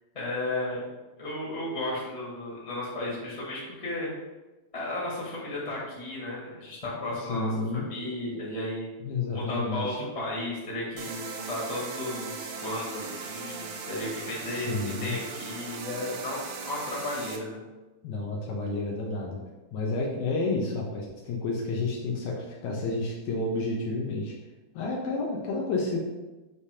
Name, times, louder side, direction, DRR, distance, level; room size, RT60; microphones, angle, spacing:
voice 1, 0.1-0.8 1.2-4.1 4.7-8.9 9.3-17.6, left 1 dB, 25° left, -6 dB, 0.7 m, -34 dB
voice 2, 7.3-7.9 9.0-10.1 14.5-15.2 18.0-19.4 19.7-24.3 24.7-26.0, left 3 dB, 90° left, -2 dB, 1.6 m, -30 dB
sound 1, 11.0-17.4, right 4 dB, 80° right, 1.8 m, -38 dB
7.0 x 2.8 x 4.8 m, 1.1 s
omnidirectional pair, 4.4 m